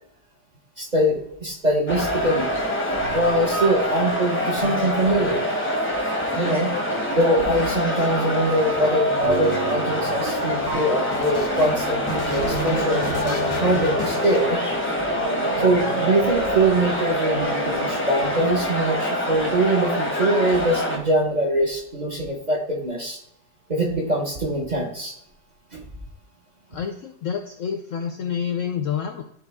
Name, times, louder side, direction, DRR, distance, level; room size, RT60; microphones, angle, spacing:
voice 1, 0.8-2.5 3.1-5.4 6.4-6.7 7.1-14.6 15.6-23.2 23.7-25.1 25.7-25.8, right 1 dB, 30° right, -1 dB, 1.1 m, -23 dB
sound 1, 1.9-21.0, equal, 10° left, 0.8 m, -25 dB
sound 2, 3.0-3.8 4.6-5.6 7.4-7.9 9.2-10.4 10.7-18.0, right 4 dB, 60° right, 0.4 m, -33 dB
sound 3, 7.4-15.2 16.0-16.9, left 4 dB, 35° left, 0.5 m, -36 dB
voice 2, 26.7-29.2, left 7 dB, 70° left, 6 dB, 0.8 m, -28 dB
11.0 x 3.8 x 3.5 m, 0.74 s
omnidirectional pair, 1.8 m